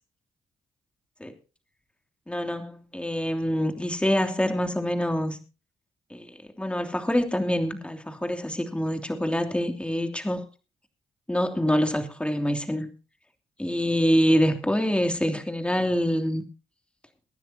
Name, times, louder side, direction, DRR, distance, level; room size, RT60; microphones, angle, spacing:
voice 1, 2.3-5.4 6.1-10.4 11.3-12.9 13.6-16.4, equal, 10° left, 5 dB, 2.9 m, -25 dB
23.5 x 10.0 x 2.9 m, 0.32 s
supercardioid pair, 60°, 12 cm